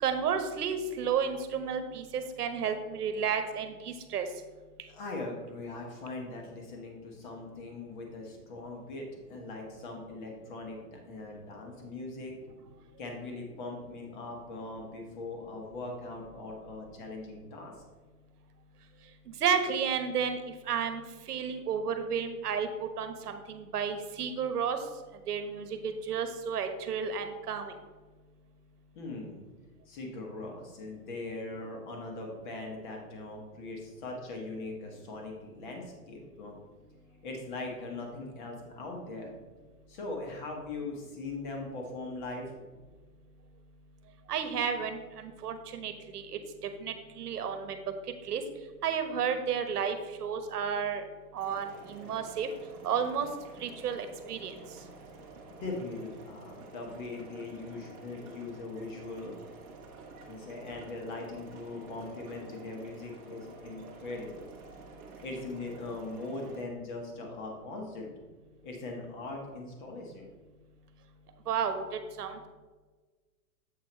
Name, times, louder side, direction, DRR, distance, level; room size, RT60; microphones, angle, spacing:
voice 1, 0.0-4.3 19.4-20.4 20.7-21.0 21.3-22.7 23.0-24.8 25.3-27.7 44.3-46.3 46.8-47.8 48.3-48.4 48.8-51.0 51.3-52.5 52.8-53.3 53.6-54.5 71.5-72.4, right 7 dB, 70° right, 8 dB, 1.1 m, -32 dB
voice 2, 4.9-12.3 13.0-17.7 28.9-29.4 29.8-36.5 37.2-39.3 39.9-42.5 55.5-59.4 60.3-64.5 65.2-68.1 68.6-70.3, left 2 dB, 30° left, 1 dB, 1.4 m, -40 dB
sound 1, 51.4-66.6, right 3 dB, 20° right, 0.9 m, -50 dB
7.9 x 4.6 x 4.4 m, 1.3 s
hypercardioid pair, 170°, 48 cm